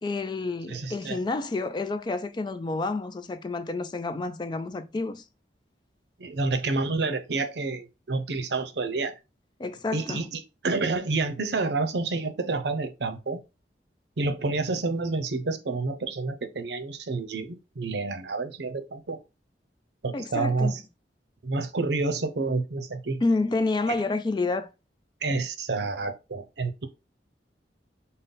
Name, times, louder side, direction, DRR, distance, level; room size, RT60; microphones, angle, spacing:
voice 1, 0.0-5.2 9.6-10.3 20.1-20.8 23.2-24.7, left 3 dB, 25° left, 0.3 m, -29 dB
voice 2, 0.7-1.2 6.2-9.1 9.9-13.4 14.2-19.2 20.0-20.8 21.4-23.2 25.2-26.9, right 3 dB, 70° right, 0.6 m, -29 dB
5.3 x 2.2 x 3.8 m
head